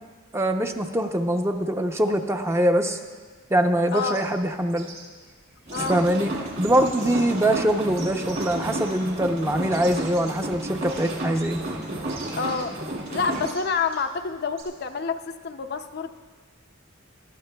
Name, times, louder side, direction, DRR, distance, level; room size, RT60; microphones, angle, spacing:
voice 1, 0.3-3.0 3.5-4.9 5.8-11.6, right 1 dB, 15° right, 5 dB, 0.6 m, -23 dB
voice 2, 3.9-4.2 5.7-6.0 12.4-12.7 13.1-16.2, left 5 dB, 50° left, 7 dB, 0.5 m, -28 dB
sound 1, 3.9-14.6, right 4 dB, 65° right, 3.5 m, -45 dB
sound 2, 5.7-13.5, right 1 dB, 50° right, 2.4 m, -32 dB
20.0 x 13.0 x 2.3 m, 1.5 s
head